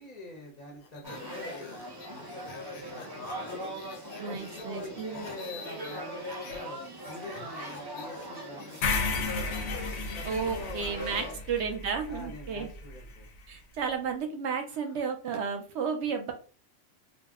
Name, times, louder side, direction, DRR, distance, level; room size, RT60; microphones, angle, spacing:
voice 1, 0.0-3.6 4.3-6.8 7.1-9.5 10.1-11.4 12.1-13.3 14.7-15.0, left 2 dB, 45° left, -1 dB, 0.6 m, -45 dB
sound 1, 0.8-6.6 6.9-11.6, left 5 dB, 90° left, 1.1 m, -48 dB
sound 2, 1.0-11.3, equal, 25° right, 0.5 m, -41 dB
voice 2, 4.2-5.3 10.2-12.7 13.5-16.3, right 6 dB, 60° right, 5 dB, 0.8 m, -33 dB
sound 3, 8.8-13.0, left 4 dB, 70° left, 0.9 m, -33 dB
2.5 x 2.1 x 3.5 m, 0.37 s
omnidirectional pair, 1.4 m